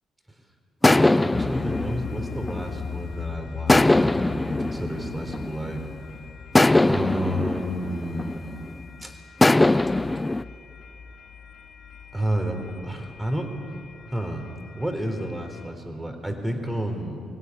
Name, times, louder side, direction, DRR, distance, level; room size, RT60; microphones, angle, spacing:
sound 1, 0.8-3.1 3.7-5.8 6.5-8.8 9.4-10.4, left 2 dB, 15° left, 0.5 m, -21 dB
voice 1, 0.8-5.9 6.8-8.6 9.0-9.2 12.1-13.5 14.1-14.5 14.8-17.2, right 1 dB, 10° right, 5 dB, 3.9 m, -31 dB
sound 2, 1.3-15.7, left 6 dB, 60° left, 2.7 m, -40 dB
23.0 x 17.0 x 9.8 m, 2.5 s
cardioid pair, 90°, 0 cm